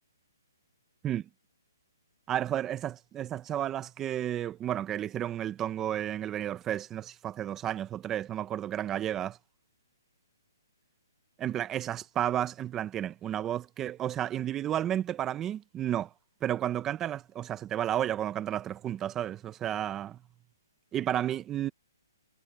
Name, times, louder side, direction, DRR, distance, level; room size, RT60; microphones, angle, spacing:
voice 1, 2.3-9.4 11.4-16.1 16.4-20.2 20.9-21.7, right 11 dB, 15° right, 1.1 m, -32 dB
hypercardioid pair, 155°, 2 cm